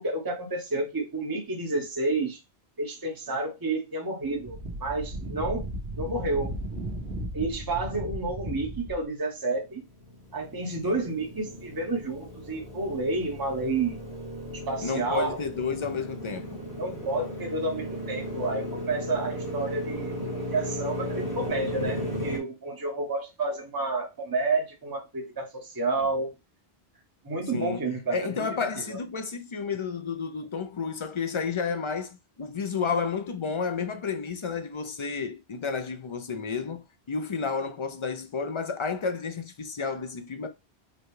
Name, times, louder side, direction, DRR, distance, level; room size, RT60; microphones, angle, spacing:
voice 1, 0.0-2.4 2.8-5.6 6.0-6.5 7.3-9.8 10.3-14.0 14.7-15.4 16.8-20.1 20.5-26.3 27.2-28.3 28.6-29.0, right 2 dB, 20° right, 1.0 m, -30 dB
Wind, 4.2-9.1, right 1 dB, 75° right, 1.5 m, -35 dB
Motorcycle, 9.7-22.4, equal, 75° left, 2.2 m, -35 dB
voice 2, 14.8-16.6 27.5-27.8 28.1-40.5, left 5 dB, 45° left, 0.4 m, -31 dB
5.1 x 2.3 x 3.1 m
omnidirectional pair, 1.1 m